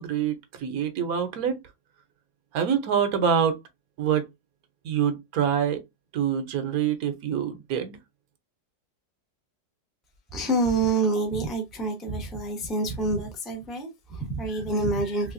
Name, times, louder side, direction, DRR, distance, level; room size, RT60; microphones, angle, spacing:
voice 1, 0.0-1.6 2.5-3.6 4.0-4.3 4.8-5.8 6.1-8.0, right 8 dB, 65° right, 1.0 m, -25 dB
voice 2, 10.3-15.3, right 2 dB, ahead, 0.5 m, -27 dB
3.4 x 3.2 x 2.5 m
omnidirectional pair, 2.0 m